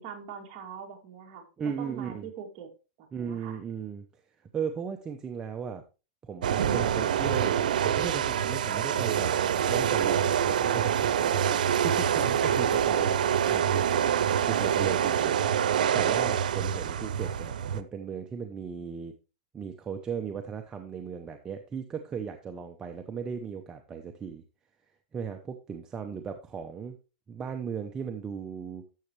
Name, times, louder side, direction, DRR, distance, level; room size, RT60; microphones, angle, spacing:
voice 1, 0.0-1.5 1.8-2.7 3.2-3.6, right 7 dB, 40° right, 1 dB, 2.5 m, -42 dB
voice 2, 1.6-2.3 3.1-4.1 4.5-5.8 6.2-11.4 11.8-13.2 13.5-14.1 14.4-19.1 19.5-24.4 25.1-27.0 27.3-28.8, right 6 dB, 15° right, 5 dB, 0.7 m, -37 dB
sound 1, 6.4-17.8, right 9 dB, 90° right, 0.7 m, -26 dB
12.0 x 7.0 x 3.2 m, 0.31 s
supercardioid pair, 155°, 4 cm